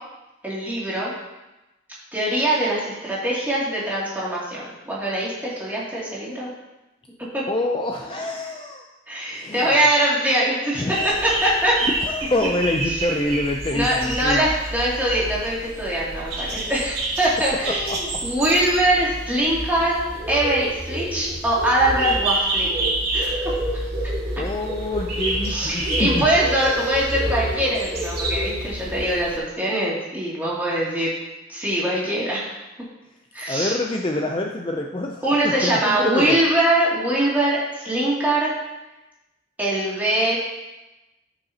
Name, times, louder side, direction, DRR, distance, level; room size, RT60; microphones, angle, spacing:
voice 1, 0.4-1.1 2.1-6.5 7.3-7.5 9.1-11.0 11.2-11.8 12.9-13.0 13.7-23.5 25.4-31.1 31.5-32.5 33.3-33.7 35.2-38.5 39.6-40.4, right 1 dB, 10° right, -8 dB, 2.5 m, -22 dB
voice 2, 7.5-8.9 9.3-9.7 10.8-11.2 11.8-14.4 17.7-18.3 24.4-26.3 33.5-36.4, left 1 dB, 25° left, 2 dB, 0.4 m, -26 dB
sound 1, 10.9-29.4, right 1 dB, 55° right, 2.1 m, -28 dB
13.5 x 5.5 x 2.8 m, 1.0 s
head